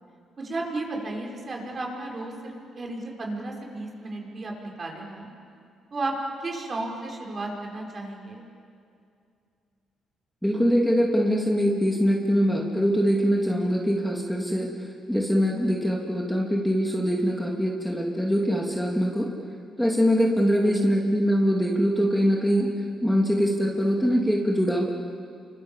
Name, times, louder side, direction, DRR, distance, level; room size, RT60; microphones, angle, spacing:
voice 1, 0.4-5.3 5.9-6.1 6.4-8.4 20.6-21.0, right 2 dB, 40° right, 0 dB, 5.9 m, -34 dB
voice 2, 10.4-19.3 19.8-22.7 23.0-24.8, equal, ahead, -1 dB, 2.7 m, -23 dB
30.0 x 25.5 x 7.5 m, 2.4 s
cardioid pair, 90°, 0 cm